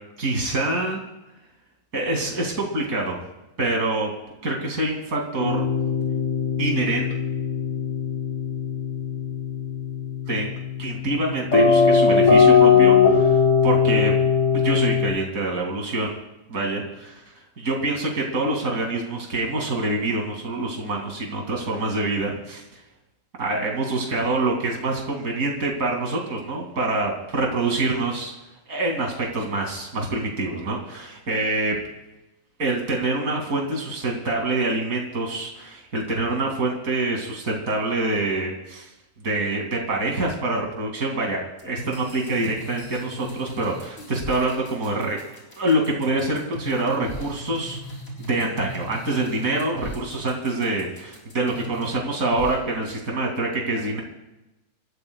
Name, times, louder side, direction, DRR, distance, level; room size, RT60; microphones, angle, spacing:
voice 1, 0.2-1.0 1.9-3.2 3.6-4.1 4.4-5.7 6.6-7.1 10.3-10.5 10.8-14.2 14.5-16.2 16.5-17.1 17.6-22.8 23.4-28.3 28.7-31.8 32.6-38.9 39.2-45.2 45.6-47.8 48.2-54.0, right 2 dB, 65° right, 0 dB, 3.0 m, -26 dB
sound 1, 5.4-15.1, left 6 dB, 65° left, 4.4 m, -20 dB
sound 2, 41.6-52.0 52.3-52.5, equal, 40° left, 5.6 m, -37 dB
29.0 x 14.5 x 2.4 m, 0.97 s
omnidirectional pair, 1.6 m